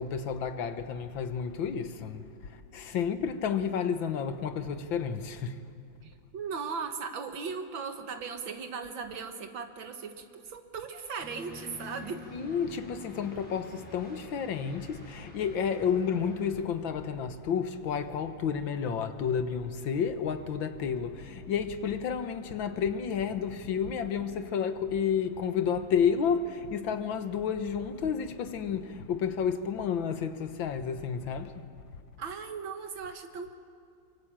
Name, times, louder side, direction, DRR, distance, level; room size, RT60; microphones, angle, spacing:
voice 1, 0.0-2.3 2.7-5.6 12.3-31.6, left 7 dB, 80° left, 1.9 m, -31 dB
voice 2, 6.0-12.2 32.2-33.5, right 5 dB, 80° right, 2.3 m, -38 dB
sound 1, 11.2-16.5, left 2 dB, 5° left, 6.4 m, -48 dB
24.0 x 23.5 x 8.9 m
omnidirectional pair, 2.1 m